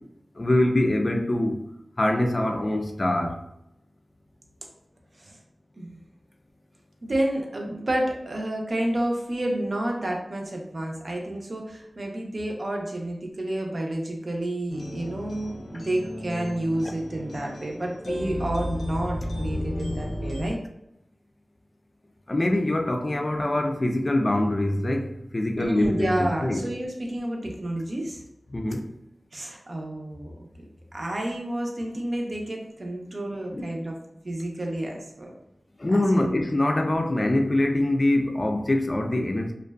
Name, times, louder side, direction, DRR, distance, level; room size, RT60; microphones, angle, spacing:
voice 1, 0.4-1.6 2.0-3.4 22.3-26.7 28.5-28.8 33.5-33.7 35.8-39.5, left 1 dB, 45° left, 4 dB, 0.3 m, -24 dB
voice 2, 7.0-20.6 25.6-28.2 29.3-30.3 30.9-34.0 34.2-35.3 35.9-36.0, right 1 dB, 55° right, 0 dB, 0.5 m, -30 dB
sound 1, 14.7-20.6, left 1 dB, 85° left, 0.7 m, -33 dB
2.5 x 2.2 x 2.3 m, 0.82 s
cardioid pair, 40°, 0 cm